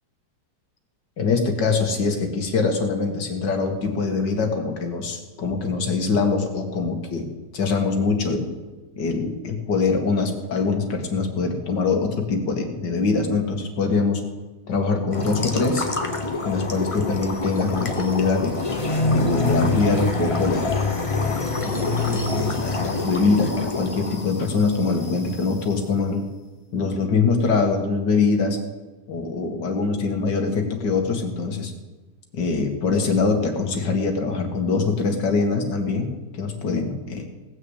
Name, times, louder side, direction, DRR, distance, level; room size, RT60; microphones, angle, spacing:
voice 1, 1.2-7.3 7.5-8.5 9.0-14.2 14.7-15.9 16.5-18.6 19.1-20.7 21.2-26.2 26.7-28.6 29.1-31.7 32.3-37.3, left 4 dB, 85° left, 4 dB, 2.3 m, -23 dB
sound 1, 15.1-25.5, left 3 dB, 25° left, 0.9 m, -26 dB
18.0 x 6.5 x 8.0 m, 1.2 s
omnidirectional pair, 1.8 m